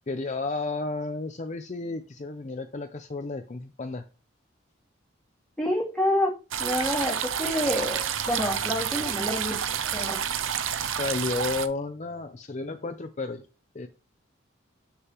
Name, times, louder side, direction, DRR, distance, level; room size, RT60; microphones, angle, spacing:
voice 1, 0.1-4.0 11.0-13.4 13.7-13.9, left 3 dB, 35° left, 7 dB, 0.5 m, -32 dB
voice 2, 5.6-6.3 6.6-9.5 9.9-10.2, left 1 dB, 5° left, -5 dB, 2.8 m, -27 dB
sound 1, 6.5-11.7, right 8 dB, 75° right, 0.7 m, -29 dB
7.7 x 6.5 x 3.0 m, 0.32 s
head